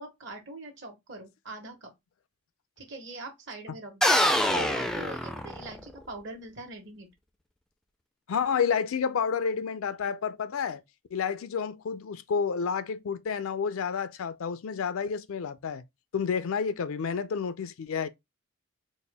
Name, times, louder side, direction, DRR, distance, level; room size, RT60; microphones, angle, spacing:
voice 1, 0.0-1.9 2.8-4.2 4.5-7.1, right 2 dB, 55° right, 1.2 m, -42 dB
sound 1, 4.0-5.9, left 1 dB, ahead, 0.3 m, -25 dB
voice 2, 8.3-10.8 11.1-15.8 16.1-18.1, left 6 dB, 70° left, 0.4 m, -30 dB
4.2 x 2.1 x 3.3 m
head